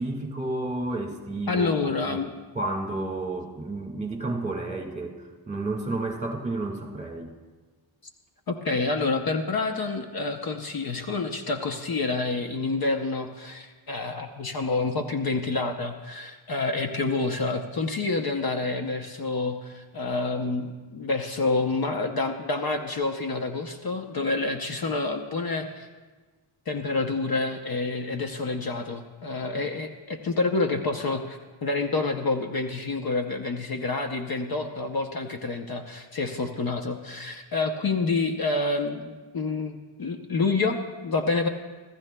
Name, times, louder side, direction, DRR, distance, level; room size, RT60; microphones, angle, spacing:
voice 1, 0.0-2.2 2.5-7.3, right 2 dB, 15° right, 0 dB, 1.7 m, -31 dB
voice 2, 1.5-2.3 8.5-25.9 26.7-41.5, left 3 dB, 50° left, 5 dB, 0.7 m, -28 dB
26.0 x 14.0 x 2.2 m, 1.3 s
wide cardioid pair, 165°, 49 cm